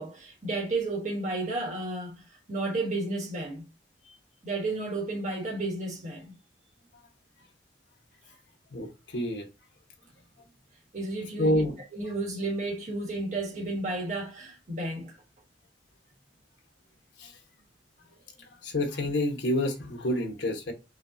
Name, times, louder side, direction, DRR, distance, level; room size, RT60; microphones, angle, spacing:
voice 1, 0.0-2.1 2.5-3.6 4.4-6.3 10.9-11.6 11.9-15.1, right 2 dB, 40° right, 1.3 m, -32 dB
voice 2, 8.7-9.5 11.4-11.7 17.2-17.3 18.4-20.7, left 1 dB, 70° left, 1.2 m, -28 dB
6.2 x 2.4 x 2.6 m
head